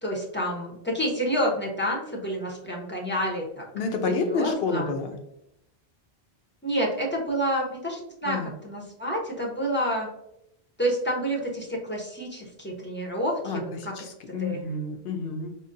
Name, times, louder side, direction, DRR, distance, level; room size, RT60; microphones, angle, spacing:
voice 1, 0.0-3.7 4.1-4.9 6.6-8.4 8.6-10.1 10.8-13.9 14.4-14.7, equal, 15° left, -2 dB, 0.6 m, -29 dB
voice 2, 3.7-5.2 8.2-8.5 13.4-13.6 13.9-15.5, left 4 dB, 70° left, 5 dB, 0.8 m, -29 dB
5.2 x 2.0 x 2.6 m, 0.81 s
omnidirectional pair, 1.1 m